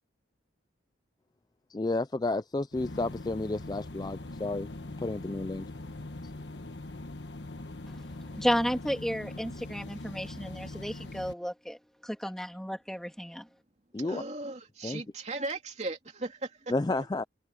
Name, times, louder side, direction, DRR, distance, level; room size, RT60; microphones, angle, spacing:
voice 1, 1.7-4.7 5.0-5.7 13.9-14.2 14.8-15.0 16.7-17.2, left 2 dB, 20° left, 0.4 m, -31 dB
sound 1, 2.7-11.3, left 2 dB, 65° left, 1.3 m, -42 dB
voice 2, 7.9-13.5, equal, ahead, 2.6 m, -33 dB
voice 3, 14.0-17.0, right 2 dB, 35° right, 3.0 m, -37 dB
head